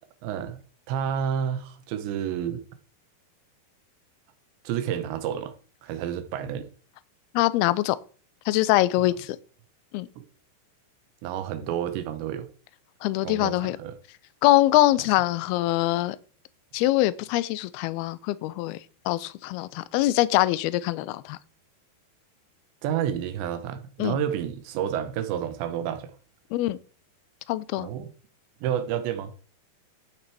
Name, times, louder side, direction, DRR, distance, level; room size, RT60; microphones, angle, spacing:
voice 1, 0.2-0.6 0.9-2.6 4.6-5.5 5.8-6.7 10.2-10.3 11.2-12.5 13.2-14.0 22.8-26.2 27.8-28.1 28.6-29.3, right 9 dB, 90° right, 3.3 m, -30 dB
voice 2, 7.3-8.0 8.5-9.4 9.9-10.1 13.0-13.8 14.4-16.2 16.7-18.8 19.1-21.4 24.0-24.2 26.5-26.8 27.5-27.9, left 16 dB, 80° left, 2.4 m, -23 dB
12.5 x 8.9 x 4.7 m
omnidirectional pair, 4.9 m